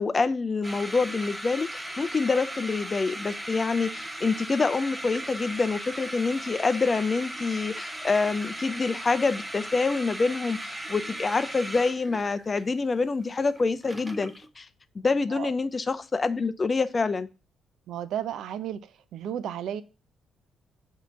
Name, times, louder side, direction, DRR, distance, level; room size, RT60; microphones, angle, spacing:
voice 1, 0.0-14.7 15.0-17.3, left 4 dB, 30° left, 13 dB, 0.5 m, -26 dB
sound 1, 0.6-14.5, right 1 dB, 10° right, 0.6 m, -37 dB
voice 2, 17.9-18.8 19.1-19.8, right 10 dB, 75° right, 14 dB, 0.5 m, -33 dB
8.4 x 2.9 x 5.6 m, 0.32 s
cardioid pair, 90°, 0 cm